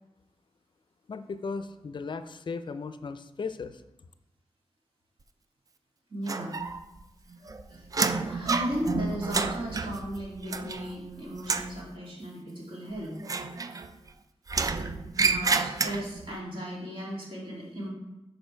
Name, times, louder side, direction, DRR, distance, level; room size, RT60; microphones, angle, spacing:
voice 1, 1.1-3.8, left 4 dB, 45° left, 11 dB, 0.4 m, -36 dB
voice 2, 6.1-6.6 7.7-7.9 8.2-13.2 15.2-17.9, right 1 dB, 55° right, -5 dB, 2.7 m, -35 dB
sound 1, 6.3-7.0 7.3-11.1 11.4-11.8 13.2-14.1 14.5-16.3, right 4 dB, 30° right, 0.4 m, -30 dB
7.0 x 5.1 x 4.4 m, 0.92 s
wide cardioid pair, 140°, 11 cm